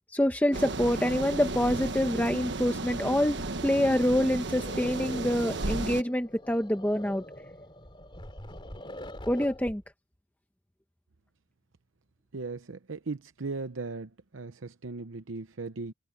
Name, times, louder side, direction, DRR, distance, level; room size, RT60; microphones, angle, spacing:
voice 1, 0.1-7.2 9.3-9.8, left 1 dB, 10° left, 1.1 m, -26 dB
sound 1, 0.5-6.0, right 2 dB, 60° right, 1.4 m, -34 dB
sound 2, 4.6-9.8, left 1 dB, 25° left, 3.4 m, -44 dB
voice 2, 12.3-15.9, right 3 dB, 80° right, 0.8 m, -38 dB
head